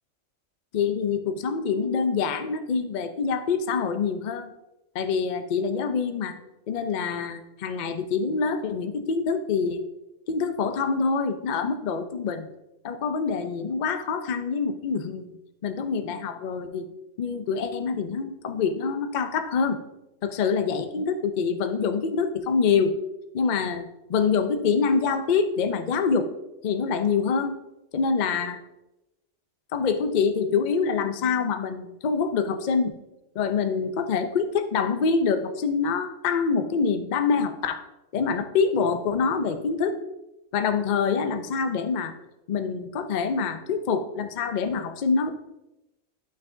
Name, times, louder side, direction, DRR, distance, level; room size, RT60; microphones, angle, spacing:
voice 1, 0.7-4.5 4.9-6.4 6.7-9.8 10.3-12.5 12.8-15.3 15.6-16.9 17.2-19.8 20.2-23.0 23.3-26.3 26.6-27.6 27.9-28.6 29.7-33.0 33.3-37.8 38.1-40.0 40.5-42.1 42.5-45.6, left 5 dB, 50° left, 9 dB, 0.5 m, -25 dB
11.5 x 5.8 x 2.6 m, 0.95 s
omnidirectional pair, 1.4 m